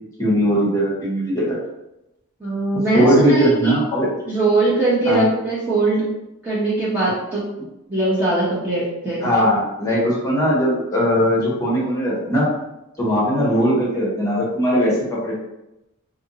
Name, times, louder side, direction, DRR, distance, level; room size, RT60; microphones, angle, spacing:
voice 1, 0.2-1.6 2.9-4.1 5.0-5.2 9.2-12.5 13.0-15.4, equal, 15° left, -6 dB, 1.2 m, -19 dB
voice 2, 2.4-3.8 4.2-6.1 6.4-7.4 7.9-9.3 13.4-13.6, right 3 dB, 10° right, -10 dB, 0.8 m, -20 dB
2.7 x 2.7 x 3.9 m, 0.91 s
head